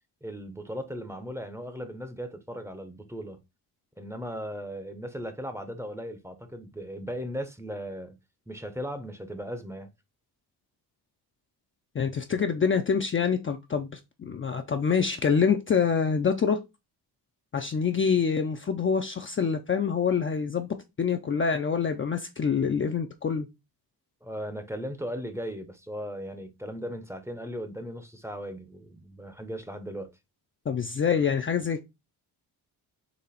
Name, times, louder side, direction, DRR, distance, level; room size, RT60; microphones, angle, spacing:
voice 1, 0.2-3.4 4.0-8.2 8.5-9.9 24.2-30.2, equal, 5° right, 0.7 m, -37 dB
voice 2, 11.9-14.0 14.3-16.6 17.5-20.7 21.0-23.5 30.7-31.8, left 6 dB, 30° left, 0.5 m, -26 dB
4.2 x 2.9 x 4.1 m
cardioid pair, 95°, 40 cm